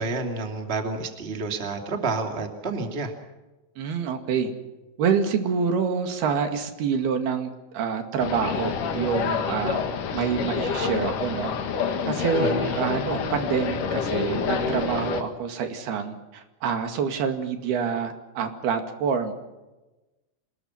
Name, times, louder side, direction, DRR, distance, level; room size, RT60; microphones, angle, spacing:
voice 1, 0.0-3.1 12.3-12.7, right 3 dB, 20° right, 4 dB, 2.2 m, -29 dB
voice 2, 3.8-4.5 5.0-9.8 10.1-11.5 12.1-19.3, right 6 dB, 80° right, 6 dB, 4.1 m, -27 dB
sound 1, 8.2-15.2, left 6 dB, 60° left, 3.2 m, -28 dB
27.0 x 20.5 x 5.9 m, 1.1 s
omnidirectional pair, 4.4 m